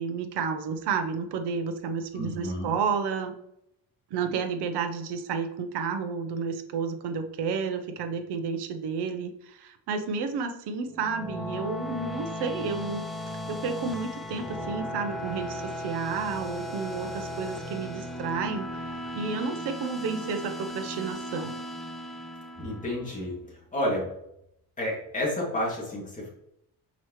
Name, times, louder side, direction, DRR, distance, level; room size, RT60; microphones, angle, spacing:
voice 1, 0.0-3.4 4.1-13.0 13.5-21.5, right 5 dB, 80° right, 7 dB, 1.0 m, -31 dB
voice 2, 2.1-2.7 22.6-23.3 23.7-24.1 24.8-26.3, left 1 dB, 20° left, -4 dB, 2.4 m, -30 dB
sound 1, 10.9-23.3, left 1 dB, ahead, 0.5 m, -36 dB
6.1 x 5.2 x 3.1 m, 0.78 s
cardioid pair, 155°, 40 cm